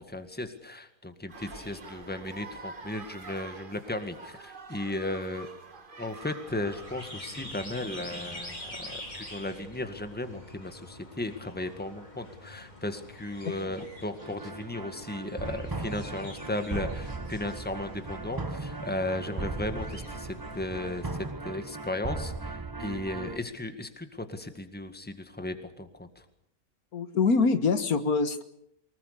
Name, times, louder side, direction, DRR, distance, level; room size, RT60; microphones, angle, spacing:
voice 1, 0.0-5.5 6.0-26.3, left 1 dB, 5° left, 8 dB, 1.8 m, -36 dB
sound 1, 1.3-9.6, right 3 dB, 35° right, 1.6 m, -47 dB
sound 2, 6.5-21.3, left 1 dB, 30° left, 3.8 m, -46 dB
voice 2, 13.4-13.9 26.9-28.4, left 4 dB, 75° left, 10 dB, 1.9 m, -25 dB
sound 3, 14.2-23.4, right 3 dB, 20° right, 0.6 m, -37 dB
24.0 x 21.0 x 6.8 m, 0.72 s
omnidirectional pair, 1.6 m